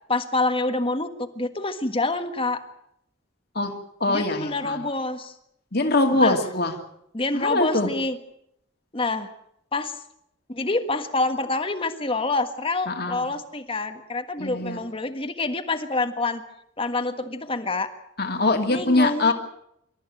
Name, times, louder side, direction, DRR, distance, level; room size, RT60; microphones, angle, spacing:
voice 1, 0.1-2.6 4.1-5.3 6.2-6.4 7.1-8.2 8.9-9.3 9.7-10.0 10.5-16.4 16.8-17.9 18.7-19.3, left 2 dB, 30° left, 7 dB, 1.5 m, -27 dB
voice 2, 4.0-4.8 5.7-6.7 7.3-7.9 12.9-13.3 14.4-14.8 18.2-19.3, left 2 dB, 55° left, 4 dB, 2.5 m, -23 dB
26.5 x 14.0 x 9.2 m, 0.75 s
head